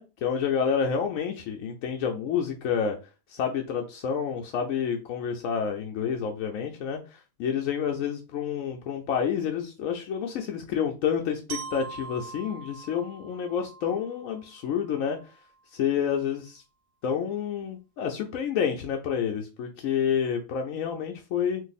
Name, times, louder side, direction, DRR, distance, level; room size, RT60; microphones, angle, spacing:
voice 1, 0.0-3.0 3.3-15.2 15.7-16.6 17.0-21.6, left 7 dB, 80° left, 1.0 m, -29 dB
Glockenspiel, 11.5-15.5, right 5 dB, 50° right, 0.8 m, -43 dB
2.6 x 2.6 x 4.0 m
omnidirectional pair, 1.4 m